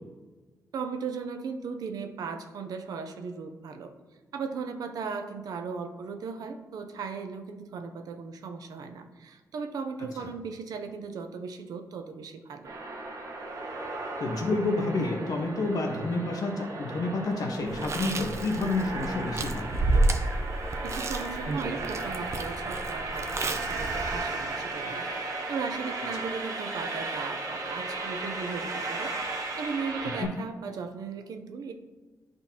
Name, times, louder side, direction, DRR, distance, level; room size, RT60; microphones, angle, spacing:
voice 1, 0.7-3.9 4.3-12.7 20.8-29.1 29.6-31.7, right 5 dB, 90° right, 7 dB, 0.6 m, -37 dB
sound 1, 12.6-30.2, right 3 dB, 75° right, 1.1 m, -35 dB
voice 2, 14.2-19.7 30.2-30.3, left 2 dB, 75° left, 2 dB, 1.1 m, -29 dB
Chewing mastication, 17.7-24.2, right 2 dB, 50° right, 0.6 m, -30 dB
10.5 x 3.8 x 2.9 m, 1.3 s
cardioid pair, 95°, 6 cm